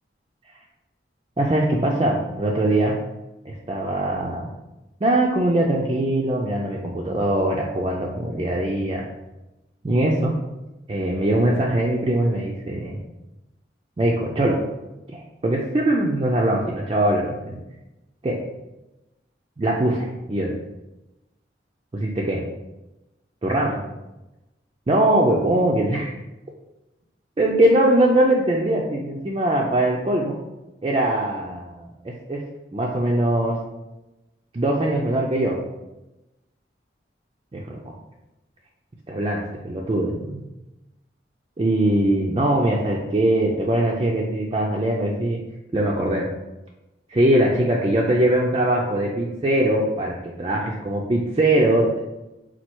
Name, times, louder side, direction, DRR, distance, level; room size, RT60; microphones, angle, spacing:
voice 1, 1.4-3.0 3.5-4.4 5.0-9.0 9.8-10.4 10.9-13.0 14.0-14.6 15.1-17.6 18.2-18.4 19.6-20.5 21.9-22.4 23.4-23.8 24.9-26.1 27.4-30.4 30.8-32.4 32.7-33.6 34.5-35.6 37.5-37.8 39.1-40.4 41.6-45.4 45.7-46.3 47.1-52.0, right 1 dB, 25° right, -3 dB, 0.4 m, -21 dB
4.3 x 2.4 x 4.4 m, 1.0 s
head